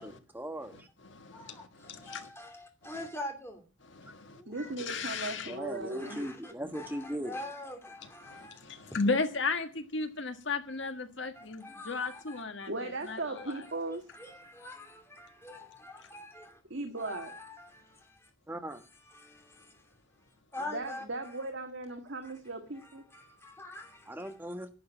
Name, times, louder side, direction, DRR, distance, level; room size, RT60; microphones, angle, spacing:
voice 1, 0.0-0.9 5.4-7.4 18.5-18.8 24.1-24.7, right 1 dB, 10° right, 1.3 m, -39 dB
voice 2, 0.7-2.3 3.8-4.4 4.8-5.6 8.0-13.6, left 4 dB, 65° left, 1.6 m, -35 dB
voice 3, 1.3-3.6 4.3-4.7 5.7-9.0 11.3-12.7 13.6-16.6 17.0-18.3 19.1-19.8 20.5-21.0 22.2-22.3 22.8-24.4, left 1 dB, 10° left, 2.6 m, -45 dB
voice 4, 4.5-6.3 6.6-6.7 12.7-14.1 16.7-17.3 20.6-23.0, right 2 dB, 60° right, 1.7 m, -38 dB
11.0 x 8.1 x 9.1 m
head